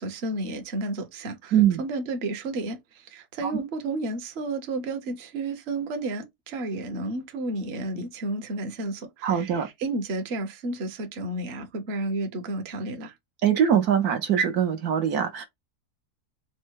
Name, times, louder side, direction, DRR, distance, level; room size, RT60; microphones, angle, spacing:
voice 1, 0.0-13.1, right 2 dB, 45° right, 1.0 m, -32 dB
voice 2, 1.5-1.8 3.4-3.5 9.2-9.7 13.4-15.4, right 9 dB, 70° right, 1.3 m, -22 dB
4.4 x 2.1 x 4.5 m
omnidirectional pair, 1.7 m